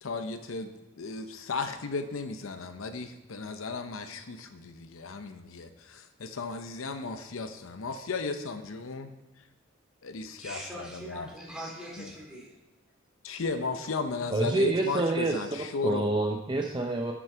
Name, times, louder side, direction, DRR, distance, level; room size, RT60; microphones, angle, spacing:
voice 1, 0.0-9.1 10.0-11.3 12.0-12.1 13.2-16.1, left 4 dB, 75° left, 9 dB, 0.7 m, -35 dB
voice 2, 10.4-12.5, right 1 dB, 5° right, -4 dB, 2.5 m, -42 dB
voice 3, 14.3-15.4 15.8-17.1, right 3 dB, 20° right, 2 dB, 0.6 m, -27 dB
10.5 x 6.3 x 4.5 m, 1.0 s
head